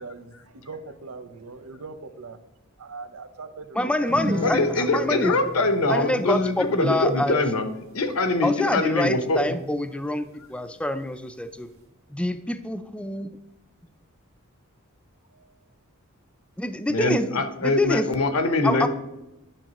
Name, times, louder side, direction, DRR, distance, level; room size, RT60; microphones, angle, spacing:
voice 1, 0.0-2.4 2.8-4.2 15.3-15.5, right 3 dB, 85° right, 10 dB, 0.7 m, -40 dB
voice 2, 3.8-5.3 5.9-7.4 8.4-11.7 12.1-13.3 16.6-17.3 17.6-18.1 18.6-18.9, left 1 dB, 5° left, 10 dB, 0.4 m, -26 dB
sound 1, 4.1-10.9 11.2-11.3 11.6-11.8, left 1 dB, 65° right, 1.8 m, -37 dB
voice 3, 4.4-7.7 7.9-9.6 16.9-18.9, left 2 dB, 75° left, 8 dB, 0.9 m, -23 dB
10.0 x 6.0 x 3.0 m, 0.95 s
head